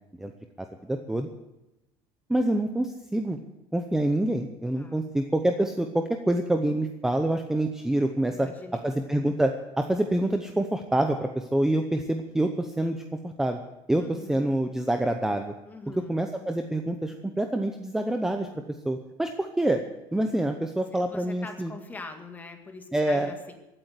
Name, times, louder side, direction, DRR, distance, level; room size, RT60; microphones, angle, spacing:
voice 1, 0.6-1.3 2.3-3.4 3.7-8.5 8.8-13.0 13.2-13.6 13.9-15.5 16.0-18.5 18.8-19.8 20.1-21.7 22.9-23.3, right 1 dB, 5° right, 6 dB, 0.8 m, -26 dB
voice 2, 8.3-9.0 14.0-14.6 15.7-16.2 20.9-23.5, left 3 dB, 15° left, 5 dB, 1.9 m, -43 dB
15.5 x 8.9 x 8.2 m, 0.97 s
cardioid pair, 150°, 10 cm